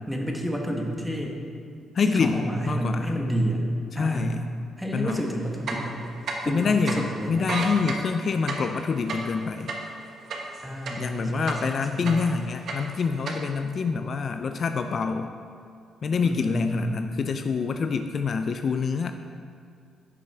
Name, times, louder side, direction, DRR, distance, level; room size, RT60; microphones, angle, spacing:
voice 1, 0.1-1.4 2.0-3.6 3.9-4.4 4.8-6.0 6.4-7.5 10.6-12.2 16.2-17.1, right 1 dB, 5° right, 0 dB, 1.2 m, -30 dB
voice 2, 1.9-3.1 3.9-4.5 4.9-5.2 6.5-9.7 11.0-15.3 16.0-19.1, left 5 dB, 50° left, 7 dB, 0.4 m, -26 dB
sound 1, 5.1-5.2 5.6-6.6 6.9-7.0 7.4-11.1 11.5-12.3 12.6-13.4, right 4 dB, 65° right, 1.1 m, -32 dB
10.0 x 6.1 x 3.4 m, 2.4 s
cardioid pair, 90°, 0 cm